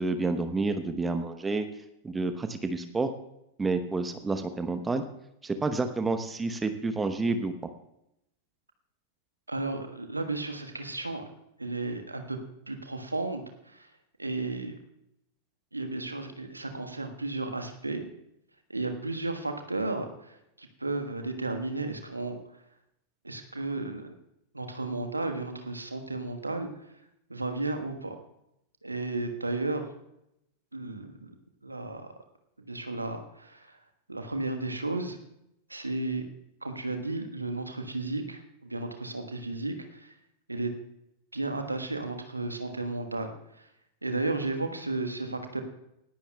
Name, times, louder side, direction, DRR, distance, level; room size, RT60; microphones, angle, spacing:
voice 1, 0.0-1.7 2.0-3.1 3.6-5.0 5.4-7.5, right 3 dB, 15° right, 8 dB, 0.9 m, -29 dB
voice 2, 9.5-11.2 11.6-12.4 12.7-13.9 14.2-14.8 15.7-18.0 18.7-22.4 23.2-24.1 24.5-26.7 27.3-28.1 28.8-29.8 30.7-31.3 31.6-32.1 32.6-33.8 34.1-35.2 35.7-36.3 36.6-40.1 40.5-40.7 41.3-43.3 43.6-43.7 44.0-45.6, right 2 dB, 80° right, 6 dB, 1.4 m, -33 dB
19.5 x 14.5 x 2.3 m, 0.81 s
figure-of-eight pair, 90°, 0 cm